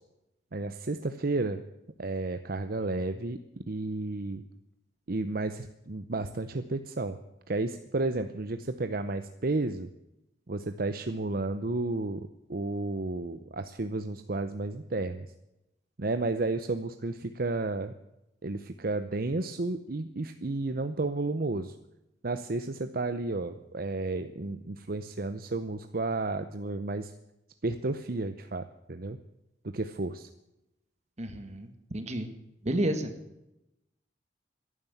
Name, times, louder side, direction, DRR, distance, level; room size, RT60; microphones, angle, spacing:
voice 1, 0.5-1.6 2.0-3.4 3.7-4.4 5.1-7.2 7.5-9.9 10.5-12.2 12.5-15.3 16.0-17.9 18.4-21.7 22.2-27.1 27.6-29.2 29.7-30.3, right 2 dB, 55° right, 10 dB, 0.8 m, -32 dB
voice 2, 31.2-32.3 32.6-33.1, right 1 dB, 40° right, 8 dB, 1.5 m, -31 dB
15.0 x 11.0 x 8.0 m, 0.90 s
head